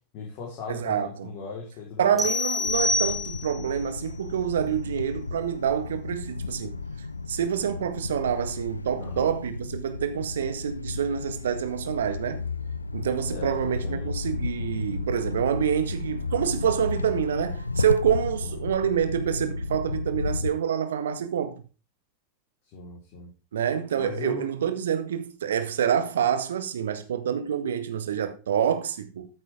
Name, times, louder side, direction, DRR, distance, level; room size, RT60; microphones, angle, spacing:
voice 1, 0.1-2.2 9.0-9.3 13.3-14.1 18.4-18.6 22.7-23.3 24.0-24.5, left 5 dB, 45° left, 4.6 m, -38 dB
voice 2, 0.7-1.3 2.0-6.7 7.3-12.4 12.9-21.6 23.5-29.3, right 8 dB, 65° right, 1.7 m, -27 dB
sound 1, 2.2-3.7, left 2 dB, 5° right, 3.8 m, -26 dB
sound 2, 2.6-20.5, left 3 dB, 85° left, 0.6 m, -33 dB
14.0 x 8.0 x 3.8 m
figure-of-eight pair, 85°, 0 cm